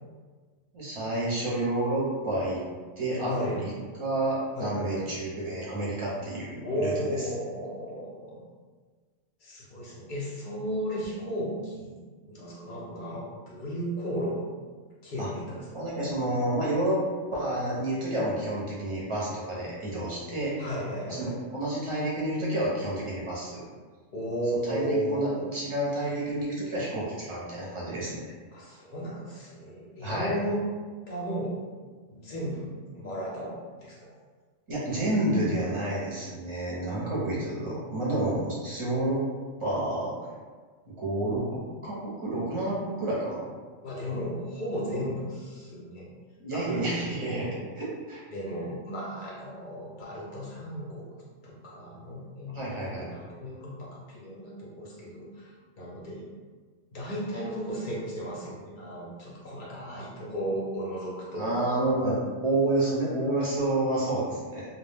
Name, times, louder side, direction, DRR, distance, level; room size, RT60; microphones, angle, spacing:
voice 1, 0.7-2.6 3.0-3.7 4.0-6.9 15.2-15.3 15.7-17.0 17.3-20.5 21.1-23.6 24.6-28.1 30.0-30.3 34.7-39.2 39.6-40.1 40.9-43.4 46.4-47.5 47.7-48.2 52.5-53.1 61.4-64.7, right 1 dB, 30° right, -7 dB, 0.7 m, -29 dB
voice 2, 3.3-3.6 4.5-5.0 6.6-8.4 9.4-14.4 15.0-15.8 20.6-21.4 24.1-25.5 28.5-30.6 31.1-31.6 32.1-34.1 43.8-46.1 46.5-47.6 48.3-51.1 51.4-56.3 56.9-61.5, equal, 50° left, -5 dB, 0.6 m, -35 dB
2.3 x 2.1 x 3.3 m, 1.5 s
omnidirectional pair, 1.3 m